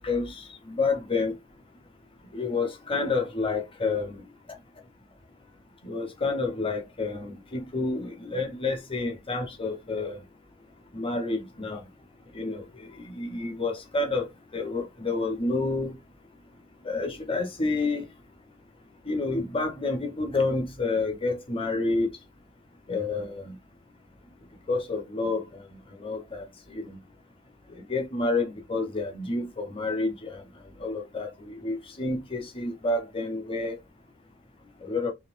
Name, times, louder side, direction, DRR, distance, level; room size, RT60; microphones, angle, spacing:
voice 1, 0.0-1.3 2.3-4.2 5.8-10.2 10.9-11.8 12.3-15.9 16.8-18.1 19.1-22.2 22.9-23.6 24.7-25.6 26.0-27.0 27.8-30.4 30.8-33.8 34.8-35.1, left 3 dB, 25° left, 1.0 m, -29 dB
4.1 x 3.2 x 2.6 m
head